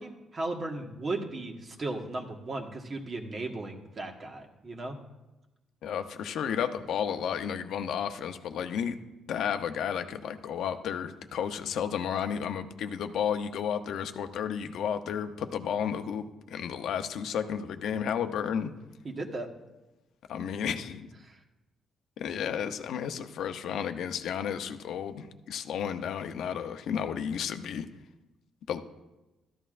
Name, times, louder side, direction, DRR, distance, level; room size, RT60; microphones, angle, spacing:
voice 1, 0.0-5.0 19.0-19.5 21.2-21.4, right 2 dB, 40° right, 3 dB, 1.5 m, -36 dB
voice 2, 5.8-9.0 9.3-18.7 20.3-21.1 22.2-27.9 28.7-28.8, left 8 dB, 75° left, 8 dB, 0.7 m, -32 dB
13.5 x 11.0 x 2.5 m, 1.1 s
cardioid pair, 90°, 0 cm